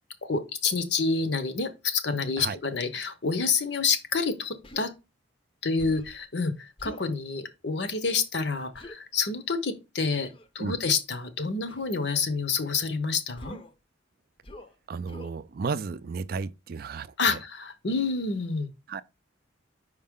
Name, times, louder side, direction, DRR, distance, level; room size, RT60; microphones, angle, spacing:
voice 1, 0.3-4.9 5.6-10.3 10.5-13.6 17.2-18.7, left 4 dB, 60° left, 0.8 m, -28 dB
Human voice, 4.6-4.9 5.8-6.2 6.8-7.1 8.7-9.0 10.2-10.5 11.7-12.0 13.4-13.7 14.4-14.7 15.1-15.4, left 1 dB, 25° left, 0.6 m, -45 dB
voice 2, 14.9-17.4 18.9-19.0, right 5 dB, 50° right, 0.4 m, -33 dB
5.3 x 4.8 x 3.7 m
head